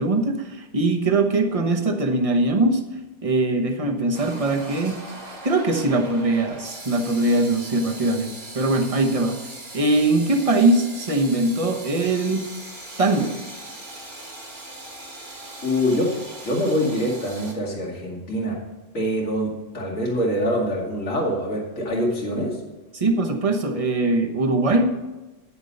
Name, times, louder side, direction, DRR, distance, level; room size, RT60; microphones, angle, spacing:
voice 1, 0.0-2.8 3.2-5.1 5.4-9.4 9.7-12.5 13.0-13.4 22.9-25.0, right 2 dB, 30° right, 3 dB, 1.0 m, -21 dB
sound 1, 4.1-17.5, right 2 dB, 50° right, 2.3 m, -39 dB
voice 2, 15.6-16.2 16.4-18.6 18.9-22.6, equal, 80° left, -2 dB, 2.6 m, -24 dB
9.9 x 7.2 x 5.4 m, 1.1 s
omnidirectional pair, 1.4 m